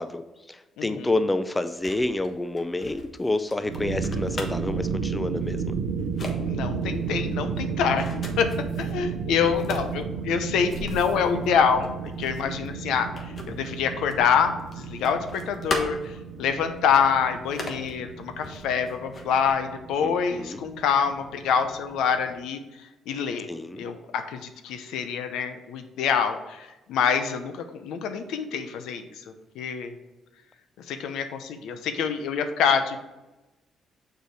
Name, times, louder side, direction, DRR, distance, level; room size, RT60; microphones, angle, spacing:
voice 1, 0.0-5.8 20.0-20.6 23.5-23.8, left 2 dB, 15° left, 11 dB, 0.5 m, -29 dB
voice 2, 0.8-1.1 6.5-8.5 8.8-23.5 23.8-29.9 30.9-33.0, left 7 dB, 85° left, 8 dB, 0.7 m, -26 dB
sound 1, 1.7-4.8 5.5-5.7 6.0-6.4 6.8-9.0 9.4-14.3 14.6-16.3 16.7-16.8 17.4-17.9 18.4-19.5, left 2 dB, 45° left, 1.3 m, -38 dB
sound 2, 3.6-22.4, right 5 dB, 85° right, 0.6 m, -33 dB
6.5 x 4.9 x 4.8 m, 1.0 s
cardioid pair, 85°, 0 cm